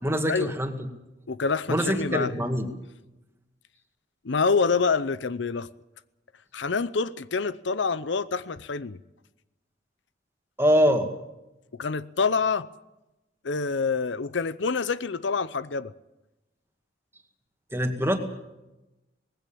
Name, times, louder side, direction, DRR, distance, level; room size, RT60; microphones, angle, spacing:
voice 1, 0.0-0.7 1.7-2.7 10.6-11.1 17.7-18.2, equal, 15° right, 2.0 m, -23 dB
voice 2, 1.3-2.3 4.2-5.7 6.5-9.0 11.8-12.7 13.4-15.9, left 4 dB, 75° left, 0.7 m, -26 dB
19.5 x 16.0 x 8.7 m
head